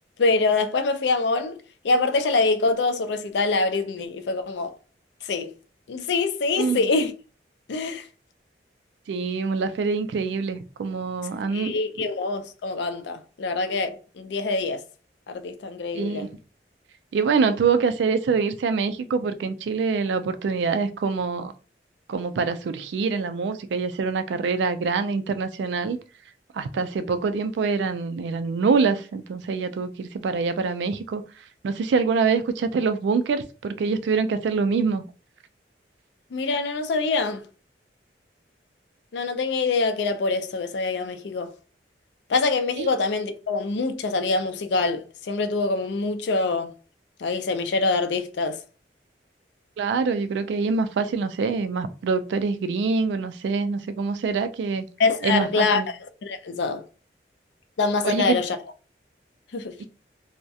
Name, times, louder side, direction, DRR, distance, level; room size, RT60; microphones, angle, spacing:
voice 1, 0.2-1.6 1.8-4.7 5.3-5.5 5.9-7.1 7.7-8.0 11.5-14.8 15.3-16.3 36.3-37.4 39.1-41.5 42.3-46.7 47.2-48.6 55.0-55.8 56.2-56.8 57.8-58.6 59.5-59.7, left 3 dB, 80° left, 0.4 m, -24 dB
voice 2, 9.1-11.7 15.9-16.3 17.1-21.5 22.1-26.0 26.5-31.2 31.6-35.0 42.8-42.9 49.8-54.9 55.2-55.9 58.0-58.4, right 4 dB, 80° right, 0.3 m, -25 dB
2.3 x 2.1 x 2.6 m
head